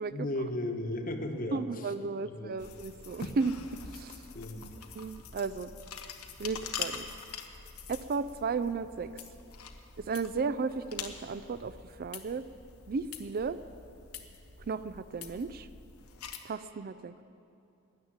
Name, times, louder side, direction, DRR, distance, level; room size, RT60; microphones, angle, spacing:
voice 1, 0.1-1.7 2.3-2.6 4.3-4.7, left 1 dB, 40° left, 5 dB, 1.1 m, -35 dB
voice 2, 1.5-3.6 3.9-4.2 5.0-5.7 6.4-7.1 7.9-9.1 10.0-12.5 12.9-13.6 14.6-15.7 16.4-17.2, right 4 dB, 45° right, 14 dB, 0.4 m, -34 dB
sound 1, 2.6-16.4, left 6 dB, 90° left, 1.1 m, -45 dB
13.0 x 10.0 x 8.8 m, 2.6 s
head